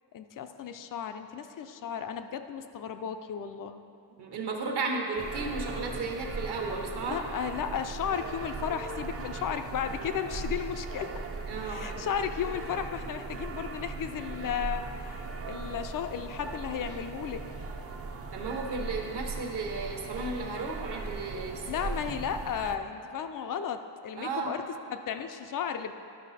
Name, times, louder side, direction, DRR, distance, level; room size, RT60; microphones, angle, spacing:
voice 1, 0.1-3.8 7.1-11.1 11.6-17.4 21.6-24.6 24.9-25.9, left 8 dB, 45° left, 8 dB, 0.5 m, -34 dB
voice 2, 4.2-7.2 11.5-11.9 18.3-21.9 24.2-24.5, right 3 dB, 60° right, 1 dB, 1.2 m, -34 dB
sound 1, 5.2-22.8, right 3 dB, 30° right, 0.6 m, -38 dB
11.5 x 5.6 x 4.1 m, 2.6 s
cardioid pair, 145°, 45 cm